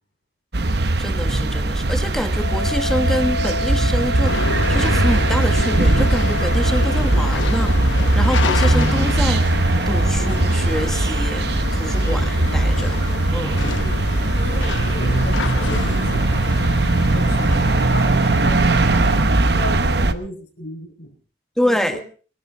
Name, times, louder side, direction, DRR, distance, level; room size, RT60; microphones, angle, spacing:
sound 1, 0.5-20.1, right 2 dB, 60° right, 1.0 m, -19 dB
voice 1, 0.6-9.5 9.9-13.0 13.3-13.7 21.6-22.0, equal, ahead, 7 dB, 1.4 m, -26 dB
Wind instrument woodwind instrument, 2.4-7.0, left 1 dB, 40° left, 5.4 m, -29 dB
sound 2, 4.2-19.2, left 4 dB, 85° left, 1.0 m, -28 dB
voice 2, 10.2-10.5 12.0-12.7 13.7-19.1 19.5-21.1 21.6-22.0, left 1 dB, 70° left, 0 dB, 5.5 m, -35 dB
24.0 x 13.5 x 4.0 m, 0.38 s
head